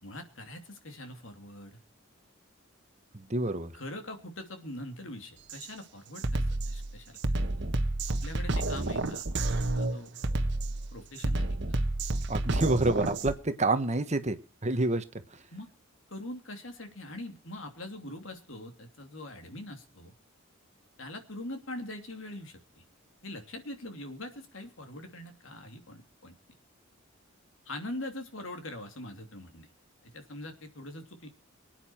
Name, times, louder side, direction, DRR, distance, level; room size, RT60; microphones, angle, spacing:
voice 1, 0.0-1.8 3.7-7.4 8.1-9.2 9.6-10.5 10.9-11.8 15.5-15.7 16.1-20.1 21.0-22.8 23.2-26.4 27.6-29.7 30.0-31.3, left 1 dB, 65° left, 6 dB, 2.9 m, -43 dB
voice 2, 3.1-3.7 12.3-15.0, right 2 dB, 35° right, 10 dB, 1.2 m, -28 dB
Drum kit, 5.5-5.7 6.2-13.4, right 2 dB, 55° right, 1.2 m, -30 dB
24.5 x 9.2 x 4.5 m, 0.35 s
head